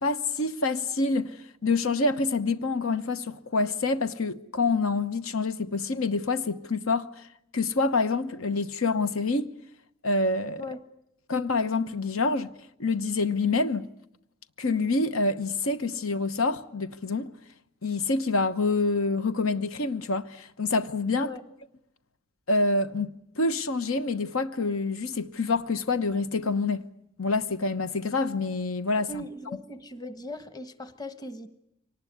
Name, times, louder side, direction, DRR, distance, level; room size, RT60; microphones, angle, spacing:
voice 1, 0.0-1.4 1.6-7.3 7.5-9.5 10.0-10.6 11.3-12.5 12.8-13.9 14.6-17.3 17.8-21.3 22.5-23.1 23.4-26.8 27.2-29.1, left 3 dB, 75° left, 1.1 m, -27 dB
voice 2, 29.0-31.5, left 1 dB, 20° left, 1.4 m, -39 dB
24.5 x 19.5 x 9.5 m
head